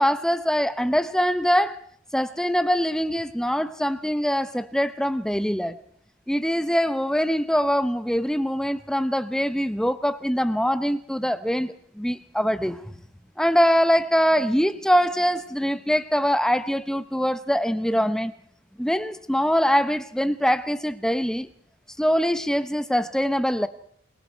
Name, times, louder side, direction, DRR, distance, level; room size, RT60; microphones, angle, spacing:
voice 1, 0.0-1.8 2.1-5.7 6.3-12.8 13.4-18.3 18.8-21.5 22.0-23.7, equal, 5° left, 0.8 m, -23 dB
27.5 x 21.0 x 4.6 m
head